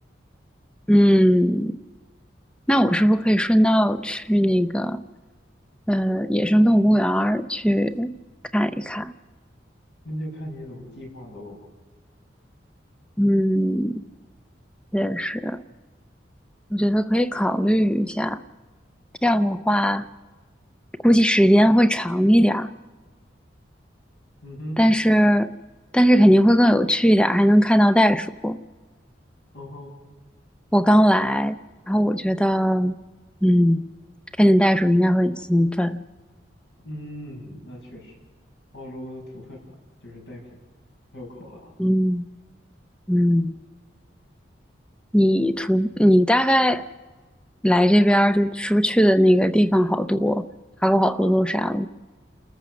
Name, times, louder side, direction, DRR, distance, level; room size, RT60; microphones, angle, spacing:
voice 1, 0.9-1.8 2.7-5.0 5.9-8.1 8.5-9.1 13.2-14.0 14.9-15.6 16.7-18.4 19.2-20.0 21.0-22.7 24.8-25.5 25.9-28.6 30.7-31.6 31.9-33.0 33.4-33.8 34.4-36.0 41.8-42.3 43.1-43.6 45.1-46.9 47.6-50.5 50.8-51.9, equal, 5° left, 0.6 m, -19 dB
voice 2, 10.0-11.6 24.4-24.8 29.5-29.9 36.8-38.1 38.7-39.6 40.0-40.5 41.1-41.7, equal, 70° left, 6.2 m, -37 dB
29.5 x 14.5 x 6.2 m
head